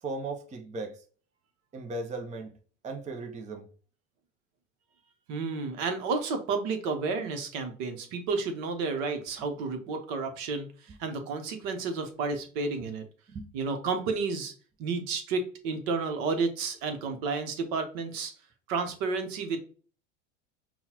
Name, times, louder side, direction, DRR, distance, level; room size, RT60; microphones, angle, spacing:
voice 1, 0.0-1.0 1.7-2.5 2.8-3.7 13.3-13.5, right 3 dB, 20° right, 0.6 m, -37 dB
voice 2, 5.3-13.0 13.5-14.5 14.8-18.3 18.7-19.6, right 4 dB, 55° right, 1.0 m, -31 dB
5.5 x 2.3 x 2.9 m
hypercardioid pair, 80°, 38 cm